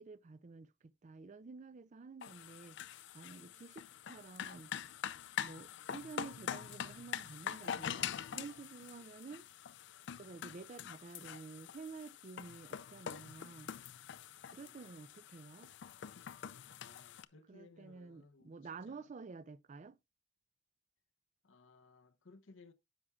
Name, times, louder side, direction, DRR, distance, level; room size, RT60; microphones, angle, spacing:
voice 1, 0.0-2.8 3.1-4.7 5.4-9.5 10.1-13.7 14.5-15.7 17.5-20.0, right 4 dB, 40° right, 0.4 m, -51 dB
sound 1, 2.2-17.3, left 8 dB, 65° left, 0.4 m, -45 dB
voice 2, 3.3-3.7 9.0-9.2 14.4-15.4 16.8-19.1 21.4-22.7, left 3 dB, 90° left, 0.9 m, -62 dB
10.0 x 7.1 x 2.3 m
head